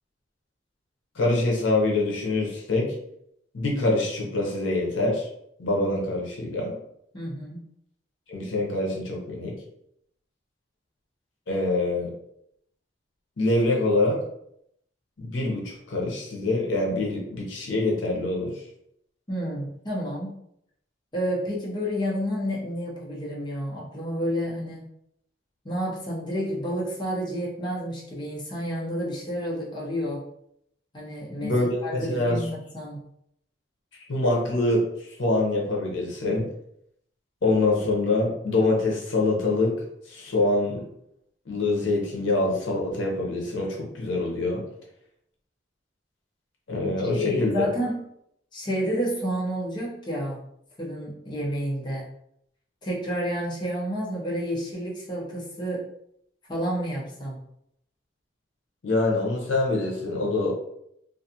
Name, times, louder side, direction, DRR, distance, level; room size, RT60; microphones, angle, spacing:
voice 1, 1.1-2.9 3.5-5.3 5.6-6.7 8.3-9.6 11.5-12.1 13.4-14.2 15.2-18.5 31.4-32.4 34.1-36.4 37.4-39.7 40.1-40.8 41.5-44.6 46.7-47.7 58.8-60.5, left 2 dB, 80° left, -1 dB, 0.7 m, -25 dB
voice 2, 7.1-7.6 19.3-20.3 21.1-24.8 25.6-30.2 30.9-33.0 47.1-48.0 48.5-50.4 50.8-52.0 52.8-55.8 56.5-57.4, equal, 25° left, -5 dB, 0.7 m, -30 dB
2.5 x 2.4 x 2.7 m, 0.74 s
head